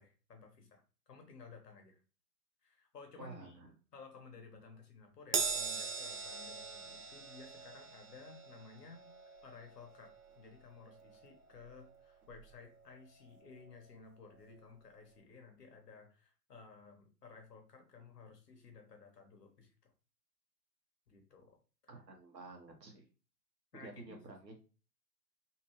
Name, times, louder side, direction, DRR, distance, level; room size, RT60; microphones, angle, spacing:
voice 1, 0.0-2.0 2.6-3.6 3.9-9.1 9.4-19.9 21.1-21.6 23.7-24.2, left 4 dB, 70° left, 4 dB, 1.3 m, -56 dB
voice 2, 3.2-3.7 21.9-23.1 23.7-24.6, right 3 dB, 80° right, 3 dB, 1.2 m, -51 dB
Crash cymbal, 5.3-12.0 12.3-12.5 13.6-13.7, right 5 dB, 60° right, 0.8 m, -41 dB
3.4 x 2.8 x 2.9 m, 0.35 s
figure-of-eight pair, 115°, 49 cm